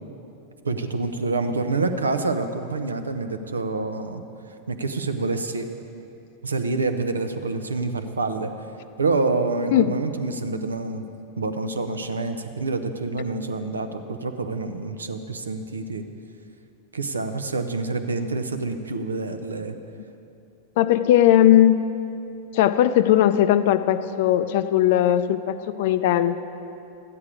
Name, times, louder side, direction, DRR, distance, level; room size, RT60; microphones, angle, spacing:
voice 1, 0.6-4.2 4.7-5.7 6.4-8.5 9.0-11.0 11.4-16.0 16.9-19.8, right 3 dB, 75° right, 8 dB, 0.7 m, -27 dB
voice 2, 20.8-21.9 22.5-26.4, left 12 dB, 50° left, 12 dB, 0.4 m, -18 dB
13.0 x 9.7 x 4.8 m, 2.7 s
figure-of-eight pair, 90°, 0 cm